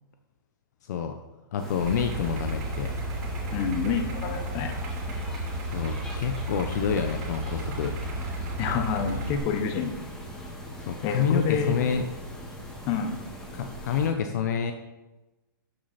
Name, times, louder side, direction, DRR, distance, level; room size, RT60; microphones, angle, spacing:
voice 1, 0.8-1.1 1.5-3.0 5.7-7.9 10.9-12.0 13.5-14.7, left 7 dB, 50° left, 6 dB, 0.8 m, -28 dB
sound 1, 1.6-14.1, equal, 5° left, 1.9 m, -40 dB
Idling, 1.8-9.4, right 1 dB, 45° right, 3.1 m, -33 dB
voice 2, 3.5-4.7 8.6-9.9 11.0-11.9 12.9-13.2, left 6 dB, 25° left, 6 dB, 1.2 m, -28 dB
13.0 x 6.3 x 4.3 m, 1.1 s
hypercardioid pair, 160°, 12 cm